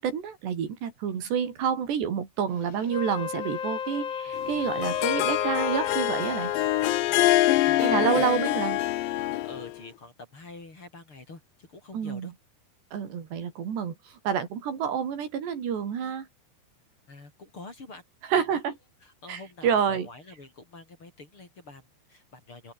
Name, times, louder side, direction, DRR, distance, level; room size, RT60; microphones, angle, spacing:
voice 1, 0.0-6.5 7.8-8.8 11.9-12.3 12.9-16.3 18.3-18.7 19.3-20.1, right 7 dB, 75° right, 5.7 m, -28 dB
Wind instrument woodwind instrument, 2.8-7.1, left 8 dB, 70° left, 1.1 m, -33 dB
Harp, 4.4-9.7, left 16 dB, 90° left, 3.3 m, -25 dB
voice 2, 7.5-8.2 8.7-8.8 9.2-12.3 17.1-18.0 19.0-22.7, left 3 dB, 30° left, 4.9 m, -46 dB
open air
omnidirectional pair, 5.0 m